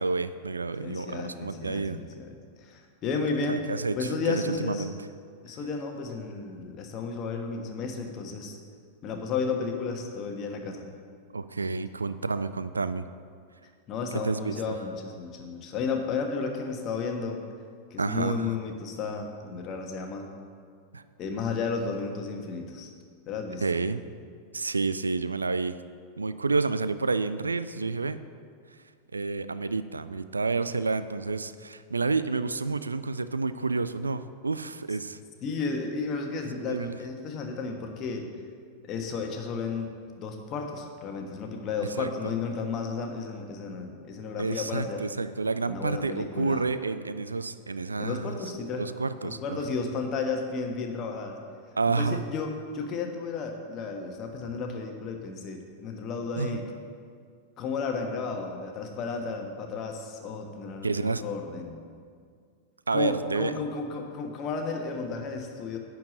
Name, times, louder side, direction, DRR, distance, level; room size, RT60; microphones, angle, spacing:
voice 1, 0.0-2.0 3.3-4.9 11.3-13.1 14.2-14.8 18.0-18.5 20.9-21.0 23.6-24.0 24.5-25.8 26.2-28.2 29.1-35.2 36.7-36.9 42.0-42.3 44.4-48.5 48.8-49.6 51.7-52.2 56.4-56.6 60.8-61.2 62.9-63.5, right 3 dB, 75° right, 13 dB, 0.3 m, -29 dB
voice 2, 0.8-3.6 4.0-4.9 5.4-8.6 9.0-10.9 13.9-17.4 17.9-20.3 21.2-22.9 23.3-23.6 35.4-38.3 38.8-39.9 40.2-45.1 45.6-46.6 48.0-48.9 49.2-51.4 51.9-56.7 57.6-61.8 62.9-65.8, left 4 dB, 35° left, 3 dB, 1.3 m, -33 dB
10.5 x 4.7 x 7.6 m, 2.1 s
figure-of-eight pair, 90°, 0 cm